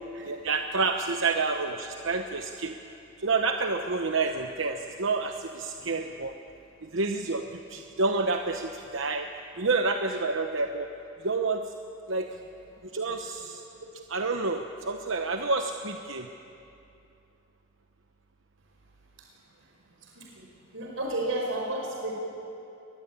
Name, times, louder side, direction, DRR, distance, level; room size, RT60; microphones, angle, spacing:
voice 1, 0.2-2.8 3.2-6.3 6.8-9.3 9.6-10.9 11.2-11.6 12.1-12.3 12.8-13.6 14.1-16.3, right 3 dB, 70° right, 5 dB, 1.0 m, -29 dB
voice 2, 20.1-20.5 20.7-22.1, right 1 dB, 90° right, -1 dB, 4.8 m, -32 dB
23.0 x 21.5 x 9.0 m, 2.7 s
head